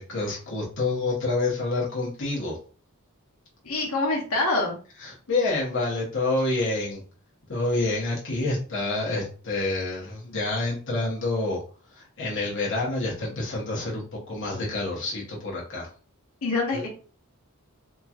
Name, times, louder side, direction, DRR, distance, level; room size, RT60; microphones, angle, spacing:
voice 1, 0.0-2.6 5.0-7.0 7.5-11.6 11.9-15.9 16.7-16.9, left 2 dB, 60° left, -3 dB, 0.9 m, -28 dB
voice 2, 3.6-4.8 16.4-16.9, left 2 dB, 90° left, -2 dB, 1.0 m, -25 dB
2.9 x 2.8 x 2.4 m, 0.39 s
head